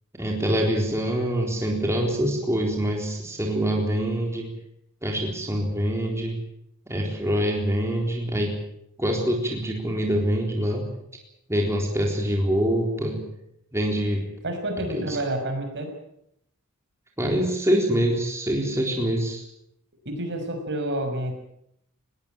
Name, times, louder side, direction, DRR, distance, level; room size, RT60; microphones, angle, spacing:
voice 1, 0.1-4.5 5.0-6.4 6.9-8.6 9.0-10.9 11.5-13.3 13.7-14.3 14.9-15.2 17.2-19.4, equal, 10° right, 0 dB, 3.9 m, -25 dB
voice 2, 14.4-15.9 20.0-21.3, right 1 dB, 55° right, 5 dB, 5.8 m, -29 dB
21.0 x 19.0 x 9.1 m, 0.76 s
head